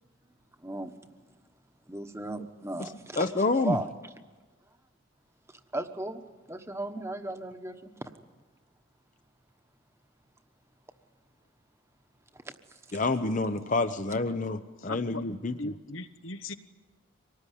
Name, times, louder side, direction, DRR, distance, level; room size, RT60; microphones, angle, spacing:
voice 1, 0.6-0.9 1.9-3.3 3.6-3.9 5.5-6.2 6.5-8.1 12.3-12.6 12.9-13.0, right 2 dB, 15° right, 1.2 m, -36 dB
voice 2, 3.2-3.8 12.9-15.5, left 3 dB, 40° left, 0.7 m, -28 dB
voice 3, 14.8-15.3 15.6-16.5, left 2 dB, 75° left, 1.2 m, -38 dB
25.0 x 19.0 x 10.0 m
head